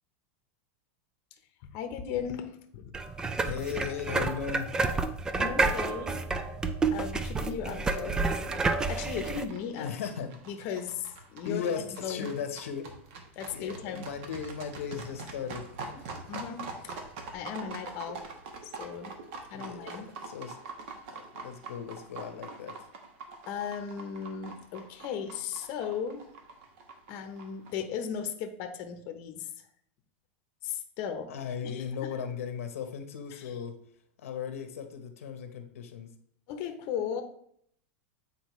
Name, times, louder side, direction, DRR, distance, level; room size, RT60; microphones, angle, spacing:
voice 1, 1.7-2.9 5.4-6.1 6.9-8.2 8.9-9.9 10.5-12.3 13.4-14.1 16.3-17.0 17.3-18.2 18.8-19.1 19.5-20.1 23.5-26.2 27.1-29.5 30.6-31.3 31.6-31.9 33.3-33.6 36.5-37.2, left 7 dB, 45° left, 6 dB, 0.8 m, -36 dB
sound 1, 2.9-9.4, right 3 dB, 10° right, 0.3 m, -30 dB
voice 2, 3.4-4.7 7.6-8.7 9.8-10.3 11.4-12.9 13.5-15.7 15.9-16.2 19.5-19.9 20.2-20.6 21.1-22.7 31.3-33.7 34.2-36.1, left 7 dB, 90° left, 7 dB, 0.9 m, -37 dB
sound 2, 8.9-27.7, right 4 dB, 55° right, 1.1 m, -44 dB
8.2 x 4.2 x 3.1 m, 0.66 s
supercardioid pair, 150°, 7 cm